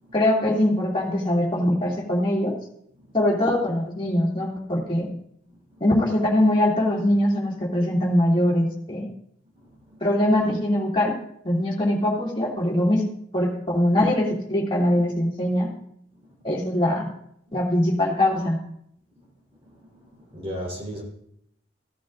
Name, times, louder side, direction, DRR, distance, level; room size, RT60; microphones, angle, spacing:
voice 1, 0.1-2.5 3.1-5.1 5.8-9.1 10.0-11.1 11.4-13.0 13.3-15.7 16.4-17.1 17.5-18.6, left 1 dB, 25° left, 2.6 m, -22 dB
voice 2, 9.6-10.0 19.6-21.0, equal, 30° right, 3.7 m, -37 dB
16.0 x 11.0 x 2.5 m
head